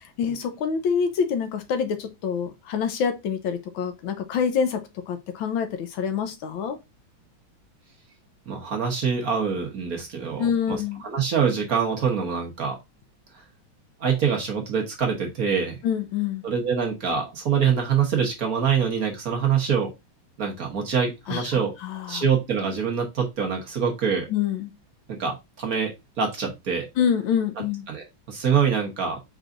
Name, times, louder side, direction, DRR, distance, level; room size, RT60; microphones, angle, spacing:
voice 1, 0.0-6.8 10.4-11.0 15.8-16.4 21.3-22.2 24.3-24.7 27.0-27.8, left 7 dB, 80° left, 1.5 m, -26 dB
voice 2, 8.5-12.8 14.0-15.8 16.4-19.9 20.4-21.7 22.1-24.3 25.1-25.9 26.2-26.9 27.9-29.2, right 6 dB, 50° right, 1.3 m, -25 dB
4.9 x 3.9 x 2.5 m
omnidirectional pair, 2.2 m